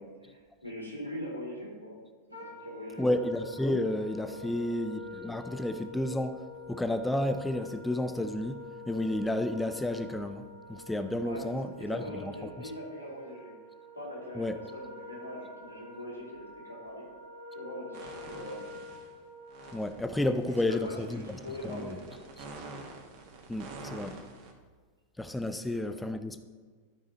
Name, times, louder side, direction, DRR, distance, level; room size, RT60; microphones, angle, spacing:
voice 1, 0.0-2.0 2.3-3.1 4.3-4.6 11.2-13.5 13.9-14.5 14.7-17.1 17.5-18.7 20.5-22.2 25.6-26.1, equal, 90° left, -6 dB, 2.9 m, -42 dB
Wind instrument woodwind instrument, 2.3-20.4, left 3 dB, 80° right, 1.5 m, -47 dB
voice 2, 3.0-6.4 6.7-10.4 10.7-12.3 14.4-14.6 19.7-21.4 21.6-22.0 23.5-24.2 25.2-26.4, left 1 dB, 5° left, 9 dB, 0.6 m, -31 dB
sound 1, 17.9-19.1 19.5-24.5, right 3 dB, 50° right, 1.3 m, -47 dB
12.0 x 4.9 x 4.3 m, 1.5 s
figure-of-eight pair, 90°, 0 cm